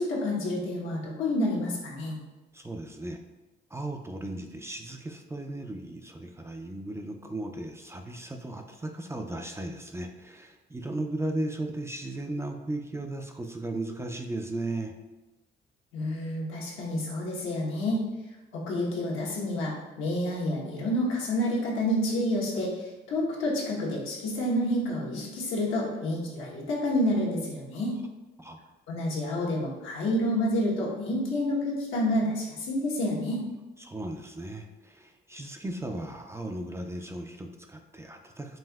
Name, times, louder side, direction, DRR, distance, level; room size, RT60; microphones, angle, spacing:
voice 1, 0.0-2.2 15.9-18.0 18.5-27.9 28.9-33.4, left 1 dB, 85° left, -3 dB, 1.0 m, -29 dB
voice 2, 2.5-3.2 3.7-14.9 28.4-28.6 33.8-38.6, right 1 dB, 15° right, 4 dB, 0.3 m, -36 dB
5.4 x 2.7 x 2.2 m, 1.1 s
cardioid pair, 90°, 20 cm